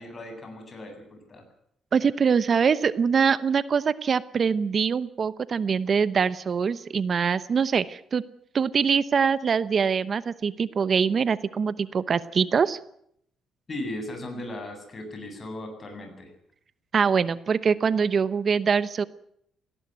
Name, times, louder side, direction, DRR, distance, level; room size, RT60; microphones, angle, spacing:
voice 1, 0.0-1.4 13.7-16.3, left 1 dB, 35° left, 5 dB, 8.0 m, -37 dB
voice 2, 1.9-8.2 8.5-12.8 16.9-19.0, right 6 dB, 45° right, 16 dB, 0.9 m, -23 dB
18.5 x 17.5 x 9.3 m, 0.71 s
cardioid pair, 90°, 0 cm